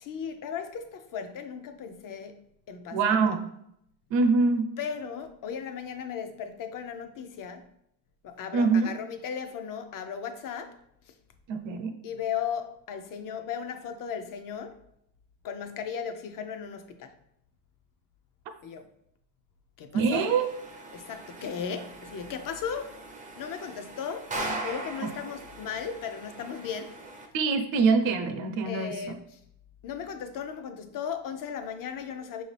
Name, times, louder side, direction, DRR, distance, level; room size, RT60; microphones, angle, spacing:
voice 1, 0.0-2.4 2.7-3.4 4.8-7.7 8.2-10.8 11.1-11.2 12.0-14.8 15.4-17.1 18.6-18.9 19.8-20.4 20.9-23.0 23.4-24.3 24.6-26.9 28.6-29.4 29.8-32.4, left 7 dB, 45° left, 8 dB, 0.5 m, -36 dB
voice 2, 2.9-3.4 4.1-4.7 8.5-8.9 11.5-11.9 19.9-20.5 25.0-25.1 27.3-29.0, right 4 dB, 70° right, 6 dB, 0.7 m, -24 dB
sound 1, 20.1-27.3, right 2 dB, 20° right, 0.4 m, -40 dB
5.8 x 2.7 x 3.2 m, 0.74 s
cardioid pair, 160°, 47 cm